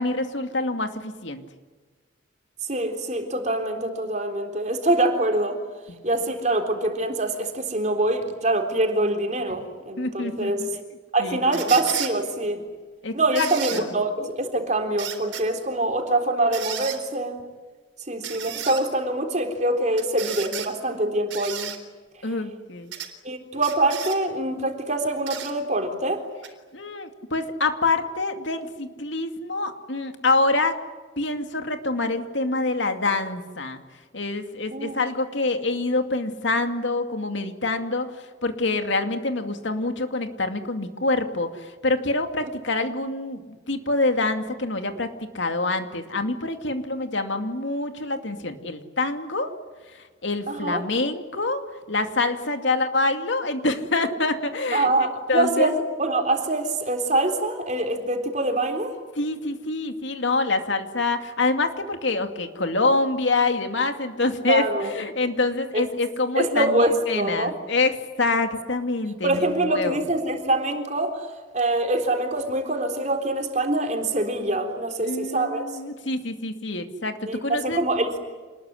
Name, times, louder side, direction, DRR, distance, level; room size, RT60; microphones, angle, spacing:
voice 1, 0.0-1.4 5.9-6.0 10.0-10.7 11.2-11.6 13.0-13.9 22.2-22.9 26.7-30.8 31.2-33.8 34.1-49.5 49.9-54.9 55.3-55.7 59.2-70.0 75.0-77.8, left 3 dB, 70° left, 7 dB, 2.4 m, -26 dB
voice 2, 2.7-5.6 6.0-10.7 11.1-12.6 13.1-17.4 18.1-21.7 23.2-26.2 34.7-35.1 50.5-50.8 54.7-58.9 64.5-64.9 65.7-65.8 66.4-67.6 69.2-71.3 71.5-75.6 77.3-78.2, right 2 dB, 35° right, 4 dB, 3.7 m, -24 dB
sound 1, 11.5-12.1 13.4-13.8 15.0-15.4 16.5-17.0 18.2-18.8 20.0-20.7 21.3-21.8 22.9-23.1 23.6-24.2 25.3-25.5 26.4-26.5, right 10 dB, 70° right, 3.9 m, -33 dB
27.5 x 20.5 x 9.9 m, 1.4 s
head